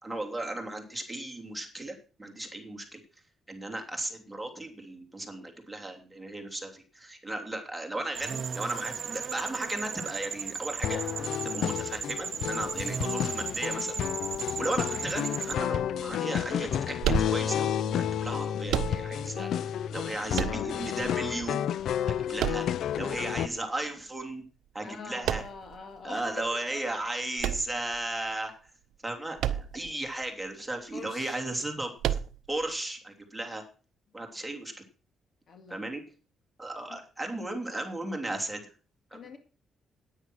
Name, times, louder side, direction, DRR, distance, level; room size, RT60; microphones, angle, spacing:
voice 1, 0.0-3.0 3.5-11.0 11.4-14.0 14.6-19.5 19.9-21.6 22.1-22.7 23.0-24.4 24.7-25.4 26.0-28.5 29.0-32.2 32.5-33.6 34.1-34.8 35.7-36.0 36.6-38.7 39.1-39.2, right 2 dB, 5° right, 3.0 m, -35 dB
sound 1, 8.2-15.6, right 6 dB, 50° right, 1.1 m, -36 dB
sound 2, 10.8-23.5, left 9 dB, 70° left, 0.5 m, -31 dB
sound 3, 17.0-17.8 18.7-19.4 20.3-21.1 22.4-23.2 25.2-25.8 27.4-28.3 29.4-30.0 30.2-30.3 32.0-32.6, right 11 dB, 85° right, 0.7 m, -31 dB
voice 2, 20.2-20.9 24.8-27.0 30.9-31.5 34.4-34.5 35.5-36.0 36.9-37.0 39.1-39.4, left 5 dB, 50° left, 2.1 m, -45 dB
9.7 x 9.5 x 6.2 m
cardioid pair, 90°, 0 cm